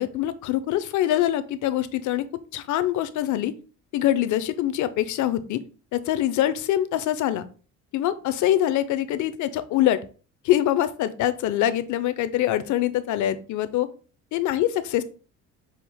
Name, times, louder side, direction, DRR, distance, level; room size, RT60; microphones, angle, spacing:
voice 1, 0.0-2.3 2.5-3.5 3.9-5.6 5.9-7.4 7.9-10.0 10.4-13.9 14.3-15.0, left 12 dB, 65° left, 13 dB, 0.6 m, -24 dB
6.2 x 2.4 x 3.5 m, 0.37 s
cardioid pair, 125°, 32 cm